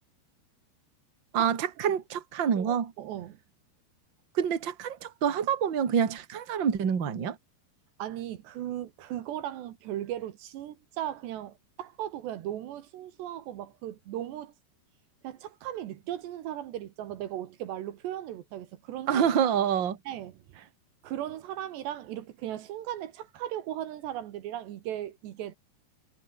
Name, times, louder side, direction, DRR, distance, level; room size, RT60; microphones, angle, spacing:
voice 1, 1.3-2.9 4.3-7.4 19.1-20.0, right 8 dB, 35° right, 2.0 m, -27 dB
voice 2, 2.6-3.4 8.0-14.5 15.2-19.3 20.1-20.3 21.0-25.5, right 12 dB, 70° right, 3.4 m, -37 dB
omnidirectional pair, 5.5 m